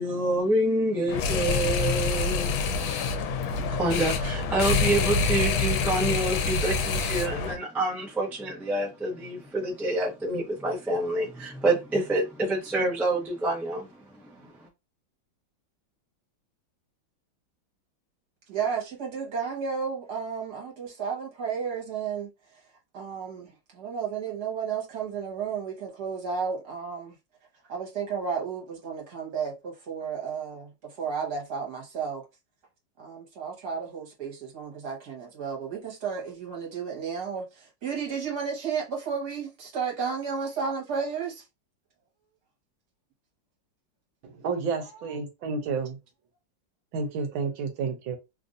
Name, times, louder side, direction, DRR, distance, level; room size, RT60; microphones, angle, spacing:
voice 1, 0.0-13.9 14.3-14.5, right 2 dB, ahead, 0.4 m, -28 dB
sound 1, 1.1-7.6, left 4 dB, 85° left, 1.4 m, -26 dB
voice 2, 18.5-27.2 27.6-32.3 33.0-41.5 44.9-45.1, right 6 dB, 55° right, 1.6 m, -33 dB
voice 3, 44.2-46.0 46.9-48.2, right 5 dB, 80° right, 1.5 m, -30 dB
3.5 x 2.5 x 2.5 m
omnidirectional pair, 2.2 m